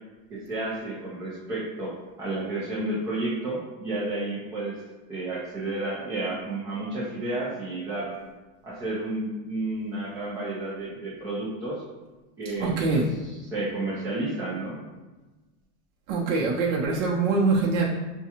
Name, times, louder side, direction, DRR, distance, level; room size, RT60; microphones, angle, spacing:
voice 1, 0.3-1.9 2.2-4.8 5.1-8.1 8.6-11.8 12.4-14.8, right 2 dB, 10° right, -10 dB, 0.4 m, -31 dB
voice 2, 12.4-13.1 16.1-17.9, right 3 dB, 55° right, -4 dB, 0.7 m, -24 dB
5.8 x 2.3 x 2.8 m, 1.2 s
supercardioid pair, 150°, 43 cm